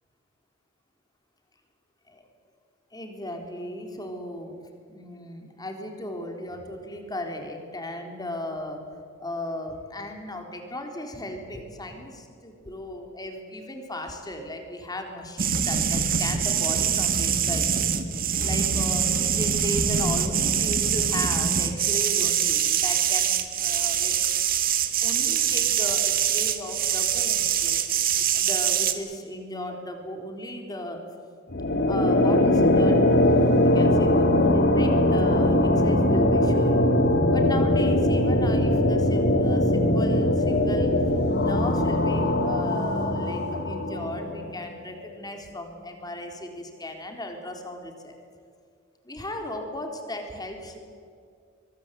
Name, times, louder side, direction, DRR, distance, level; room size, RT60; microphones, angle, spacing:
voice 1, 2.9-4.5 4.9-8.8 9.2-17.7 18.4-24.1 25.0-31.0 31.9-36.8 37.3-40.9 41.4-48.1 49.0-50.8, left 1 dB, 20° left, 4 dB, 3.8 m, -36 dB
sound 1, 15.4-28.9, right 8 dB, 45° right, 1.8 m, -24 dB
sound 2, 31.5-44.6, left 1 dB, 55° left, 2.5 m, -21 dB
23.5 x 23.5 x 8.3 m, 2.3 s
head